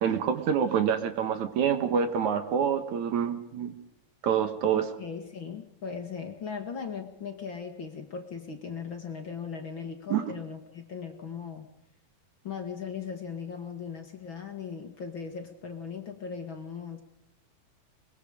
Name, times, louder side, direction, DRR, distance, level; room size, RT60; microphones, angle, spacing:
voice 1, 0.0-3.8 4.2-4.8 10.1-10.3, right 8 dB, 65° right, 9 dB, 2.8 m, -27 dB
voice 2, 4.7-11.7 12.4-17.0, left 6 dB, 45° left, 5 dB, 2.2 m, -38 dB
23.5 x 22.0 x 5.1 m, 0.80 s
omnidirectional pair, 3.7 m